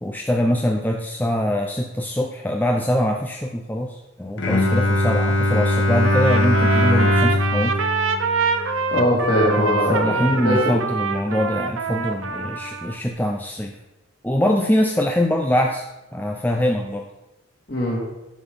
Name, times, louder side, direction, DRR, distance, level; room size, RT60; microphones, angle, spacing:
voice 1, 0.0-7.8 9.6-13.8 14.2-15.8 16.1-17.1, left 1 dB, 10° left, 2 dB, 0.6 m, -23 dB
Bowed string instrument, 4.4-10.1, left 1 dB, 60° left, 1.6 m, -21 dB
Trumpet, 6.0-13.0, right 4 dB, 75° right, 0.9 m, -25 dB
voice 2, 8.9-10.6 17.7-18.0, equal, 45° left, -3 dB, 3.3 m, -21 dB
11.0 x 6.9 x 5.3 m, 1.0 s
head